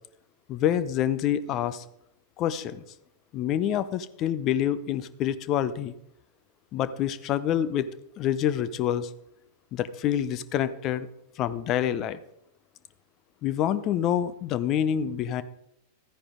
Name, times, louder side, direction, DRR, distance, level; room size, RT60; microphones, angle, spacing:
voice 1, 0.5-1.8 2.4-2.8 3.3-5.9 6.7-7.9 8.2-9.1 9.7-11.1 11.4-12.2 13.4-15.4, left 10 dB, 35° left, 15 dB, 0.6 m, -27 dB
13.5 x 9.8 x 3.8 m, 0.81 s
figure-of-eight pair, 90°, 0 cm